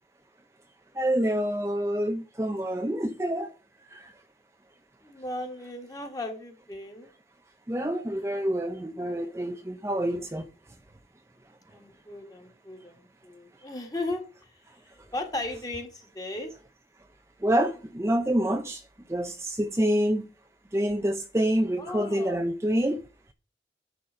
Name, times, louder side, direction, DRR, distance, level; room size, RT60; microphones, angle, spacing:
voice 1, 0.9-3.5 3.9-4.1 7.7-10.5 17.4-18.8 19.1-20.3 20.7-23.0, right 1 dB, 15° right, 0.5 m, -27 dB
voice 2, 5.0-7.1 11.7-14.5 15.1-16.5 21.8-22.5, left 2 dB, 20° left, 1.9 m, -36 dB
11.0 x 4.0 x 6.4 m
head